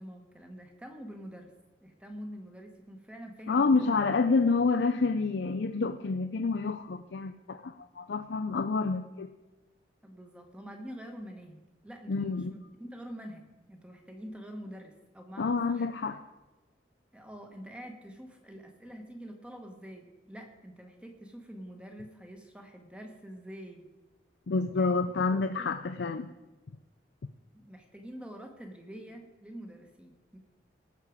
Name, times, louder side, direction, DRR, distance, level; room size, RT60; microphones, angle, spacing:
voice 1, 0.0-1.5 1.8-4.0 10.0-15.9 17.1-23.9 24.7-25.0 25.3-25.7 27.5-30.4, equal, 5° right, 3 dB, 1.4 m, -46 dB
voice 2, 3.5-9.3 12.1-12.5 15.4-16.2 24.5-26.3, left 4 dB, 75° left, 7 dB, 0.5 m, -28 dB
18.5 x 6.6 x 5.0 m, 1.1 s
head